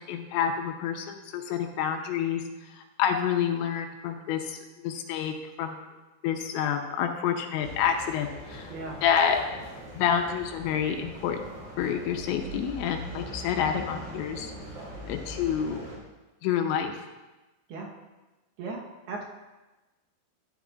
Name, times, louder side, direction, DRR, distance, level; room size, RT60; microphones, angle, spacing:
voice 1, 0.1-2.4 3.0-5.8 6.2-8.7 9.0-9.4 10.0-11.5 11.8-14.5 15.1-15.8 16.4-16.9, left 8 dB, 85° left, 3 dB, 3.0 m, -28 dB
sound 1, 7.6-16.0, equal, 40° right, 3.7 m, -42 dB
voice 2, 18.6-19.2, right 3 dB, 70° right, -2 dB, 2.9 m, -37 dB
13.5 x 11.0 x 2.5 m, 1.1 s
omnidirectional pair, 5.4 m